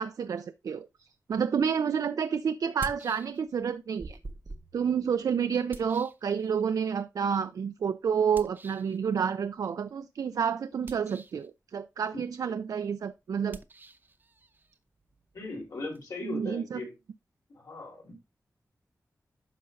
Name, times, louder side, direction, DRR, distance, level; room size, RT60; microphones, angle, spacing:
voice 1, 0.0-4.2 4.7-13.6 16.2-16.8, right 7 dB, 85° right, 0.4 m, -29 dB
sound 1, 1.6-1.7 2.6-3.7 4.0-6.8 8.3-9.0 10.7-11.5 13.5-16.0, right 2 dB, 35° right, 0.6 m, -47 dB
voice 2, 15.3-16.9 17.5-18.1, left 3 dB, 90° left, 3.8 m, -38 dB
10.0 x 6.3 x 2.6 m
wide cardioid pair, 125°, 6 cm